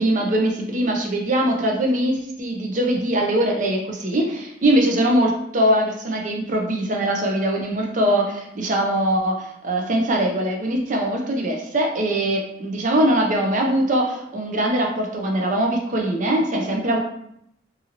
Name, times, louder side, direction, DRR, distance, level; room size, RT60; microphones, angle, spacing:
voice 1, 0.0-17.0, right 1 dB, 45° right, 1 dB, 0.5 m, -22 dB
2.7 x 2.6 x 2.8 m, 0.76 s
head